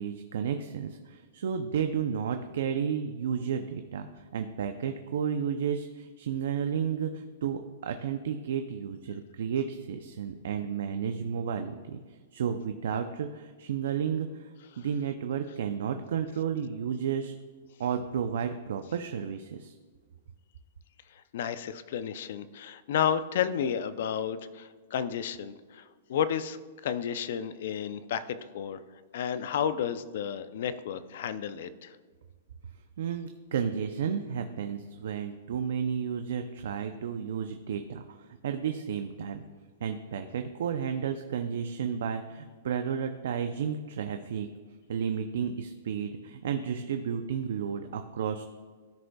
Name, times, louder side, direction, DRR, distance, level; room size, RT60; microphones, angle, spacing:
voice 1, 0.0-17.3 17.8-19.7 33.0-39.4 39.8-44.5 44.9-48.4, right 7 dB, 70° right, 7 dB, 0.5 m, -32 dB
voice 2, 21.1-25.8 26.1-28.8 29.1-32.0, left 8 dB, 60° left, 13 dB, 0.5 m, -32 dB
13.5 x 5.2 x 2.3 m, 1.5 s
hypercardioid pair, 160°, 0 cm